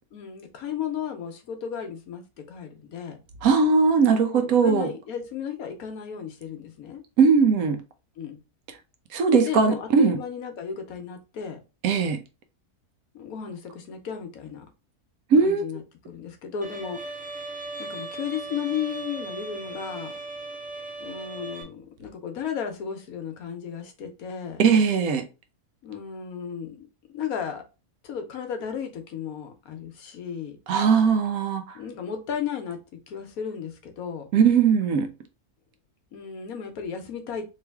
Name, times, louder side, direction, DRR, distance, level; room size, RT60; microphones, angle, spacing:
voice 1, 0.1-2.2 2.5-3.2 4.3-7.0 8.2-8.4 9.5-11.6 13.1-14.7 15.4-17.0 17.8-20.1 21.0-24.6 25.8-27.6 28.0-30.6 31.7-34.3 36.1-37.5, left 7 dB, 70° left, 1.2 m, -34 dB
voice 2, 3.4-4.9 7.2-7.8 9.1-10.2 11.8-12.2 15.3-15.7 24.6-25.3 30.7-31.8 34.3-35.1, right 5 dB, 70° right, 1.1 m, -19 dB
Bowed string instrument, 16.6-21.6, right 2 dB, 10° right, 0.6 m, -37 dB
3.3 x 3.1 x 3.4 m
omnidirectional pair, 1.6 m